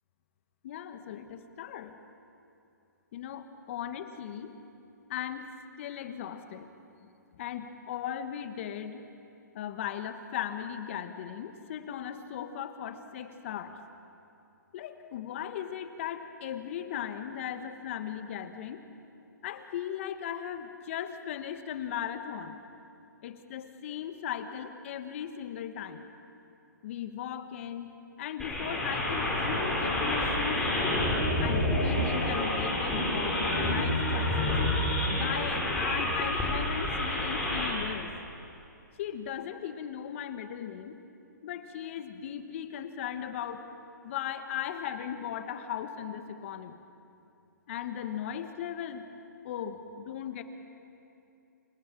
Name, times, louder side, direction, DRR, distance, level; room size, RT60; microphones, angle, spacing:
voice 1, 0.6-2.0 3.1-4.5 5.1-5.5 5.8-6.9 7.4-9.0 9.5-13.7 14.7-18.8 19.4-22.6 23.2-26.1 26.8-27.9 28.2-31.0 31.4-34.6 35.1-38.1 39.0-41.0 41.4-43.6 44.0-46.8 47.7-49.1 49.4-50.4, left 9 dB, 40° left, 8 dB, 1.5 m, -37 dB
sound 1, 28.4-37.7, left 1 dB, 5° left, 5.4 m, -28 dB
28.0 x 17.0 x 7.5 m, 2.7 s
hypercardioid pair, 150°, 10 cm